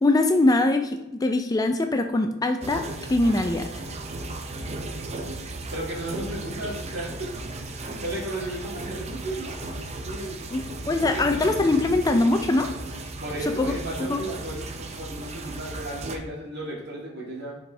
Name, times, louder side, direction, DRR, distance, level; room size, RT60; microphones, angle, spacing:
voice 1, 0.0-2.8 3.1-3.7 10.5-12.7 13.6-13.7 14.1-14.2, left 2 dB, 15° left, 6 dB, 0.3 m, -22 dB
sound 1, 2.6-16.2, right 2 dB, 30° right, 0.6 m, -35 dB
voice 2, 5.7-7.3 7.6-9.6 10.0-10.4 11.0-11.3 13.2-17.6, right 1 dB, 55° right, -4 dB, 2.1 m, -34 dB
7.2 x 4.3 x 3.3 m, 0.98 s
head